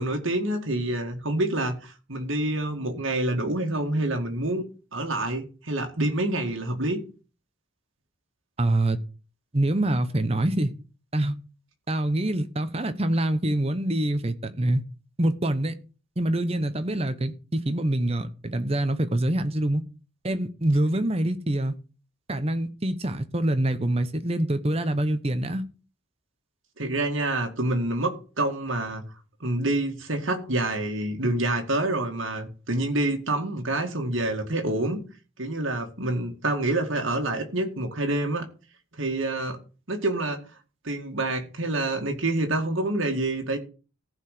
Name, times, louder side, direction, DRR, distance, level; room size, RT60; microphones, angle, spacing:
voice 1, 0.0-4.7 4.9-7.0 26.8-29.0 29.4-35.0 35.4-38.5 39.0-39.6 39.9-40.4 40.8-43.6, right 2 dB, 65° right, 2.2 m, -27 dB
voice 2, 8.6-9.0 9.5-10.7 11.1-11.4 11.9-14.8 15.2-15.7 16.2-19.8 20.2-21.7 22.3-25.6, right 1 dB, 30° right, 1.0 m, -25 dB
14.5 x 4.9 x 6.6 m
head